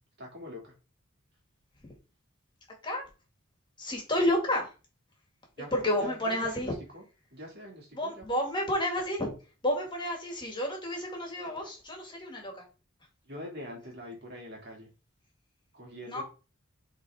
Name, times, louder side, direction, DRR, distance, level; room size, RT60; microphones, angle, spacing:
voice 1, 0.2-0.7 5.6-7.0 7.3-8.2 13.3-14.9 15.7-16.2, left 1 dB, 50° right, 0 dB, 2.5 m, -44 dB
voice 2, 3.8-4.7 5.7-6.7 7.9-9.3 9.6-12.7 16.0-16.2, left 1 dB, 25° left, 1 dB, 2.0 m, -30 dB
8.7 x 3.8 x 3.5 m, 0.33 s
head